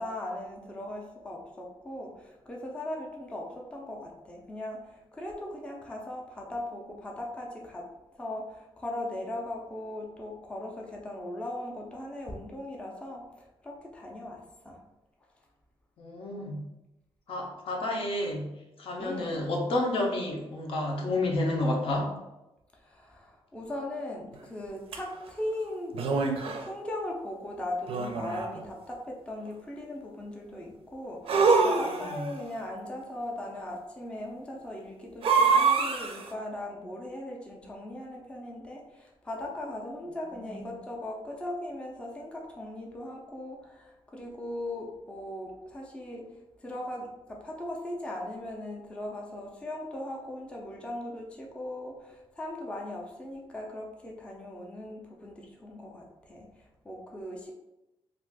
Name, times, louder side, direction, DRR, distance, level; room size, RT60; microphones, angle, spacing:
voice 1, 0.0-7.9 8.2-13.3 13.6-14.8 19.0-19.5 22.8-26.0 26.4-46.3 46.6-57.5, left 1 dB, 10° left, -1 dB, 0.4 m, -39 dB
voice 2, 16.0-16.6 17.3-18.5 18.8-22.1 32.0-32.3 40.3-40.6, left 1 dB, 65° left, 0 dB, 0.6 m, -30 dB
sound 1, 24.9-25.0 25.9-26.7 27.9-28.6 31.3-32.3 35.2-36.3, right 4 dB, 65° right, 0.4 m, -25 dB
2.5 x 2.3 x 3.4 m, 0.96 s
wide cardioid pair, 140°, 10 cm